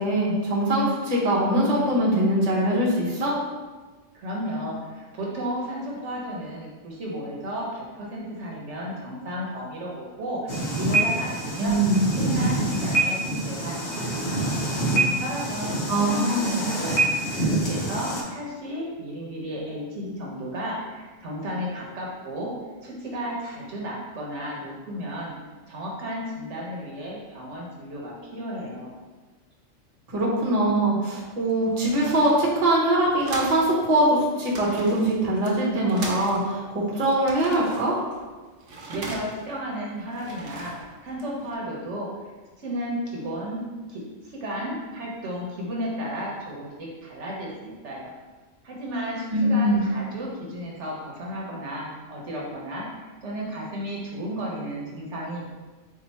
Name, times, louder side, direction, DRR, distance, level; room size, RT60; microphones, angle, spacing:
voice 1, 0.0-3.3 11.6-12.0 15.9-16.6 30.1-38.0 49.3-49.9, right 1 dB, 35° right, -4 dB, 1.0 m, -22 dB
voice 2, 4.1-11.8 12.1-14.6 15.2-17.0 17.3-22.5 22.8-25.3 25.7-28.9 38.8-40.7 41.0-42.1 42.6-43.6 43.9-48.1 48.6-55.4, equal, 65° right, -3 dB, 1.1 m, -33 dB
sound 1, 10.5-18.2, right 2 dB, 55° left, 1.0 m, -26 dB
sound 2, 31.2-33.8 34.0-34.1 34.4-36.7 37.0-39.6 40.0-41.5, right 2 dB, 90° right, 1.1 m, -39 dB
4.5 x 2.7 x 4.1 m, 1.3 s
omnidirectional pair, 1.3 m